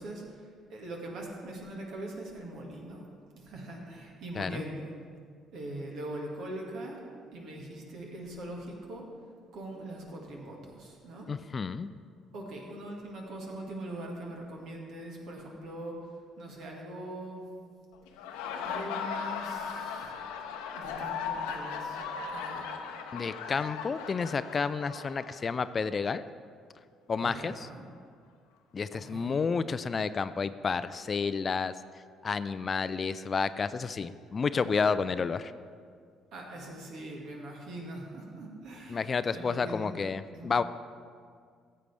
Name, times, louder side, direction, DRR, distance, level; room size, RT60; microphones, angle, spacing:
voice 1, 0.0-3.1 3.3-4.9 5.5-7.0 7.3-9.1 9.5-11.3 12.3-16.1 16.4-17.5 18.6-20.1 20.7-22.0 22.3-22.7 27.2-27.8 28.9-29.4 36.3-39.9 40.3-40.5, right 1 dB, 65° right, 0 dB, 1.8 m, -42 dB
voice 2, 11.3-11.9 23.1-26.2 27.1-27.5 28.7-31.7 32.2-35.5 38.9-40.6, left 5 dB, 40° left, 14 dB, 0.4 m, -30 dB
Laughter, 18.1-25.7, left 6 dB, 75° left, 0.7 m, -37 dB
14.5 x 7.8 x 3.4 m, 2.1 s
hypercardioid pair, 50°, 0 cm